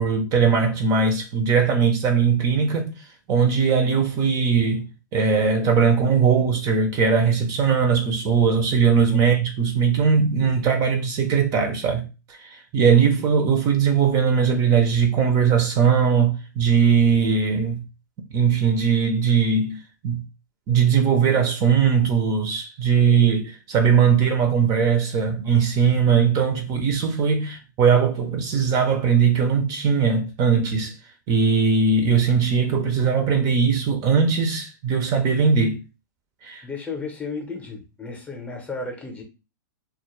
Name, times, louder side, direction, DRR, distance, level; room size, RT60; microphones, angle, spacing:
voice 1, 0.0-2.9 3.3-17.8 18.3-19.8 20.0-20.2 20.7-30.9 31.3-35.8 36.4-36.6, right 6 dB, 35° right, 0.5 m, -20 dB
voice 2, 36.6-39.2, left 4 dB, 15° left, 0.7 m, -33 dB
2.2 x 2.1 x 3.0 m
hypercardioid pair, 120°, 11 cm